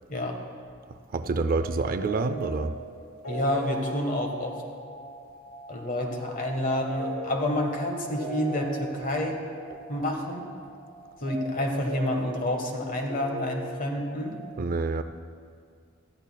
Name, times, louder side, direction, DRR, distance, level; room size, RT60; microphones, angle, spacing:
voice 1, 1.1-2.7 14.6-15.0, right 3 dB, 45° right, 10 dB, 0.4 m, -27 dB
sound 1, 1.6-14.5, right 1 dB, 75° left, 3.5 m, -39 dB
voice 2, 3.3-4.6 5.7-9.4 9.9-10.4 11.2-14.4, left 1 dB, 40° left, 3 dB, 1.3 m, -29 dB
18.0 x 13.0 x 2.3 m, 2.1 s
head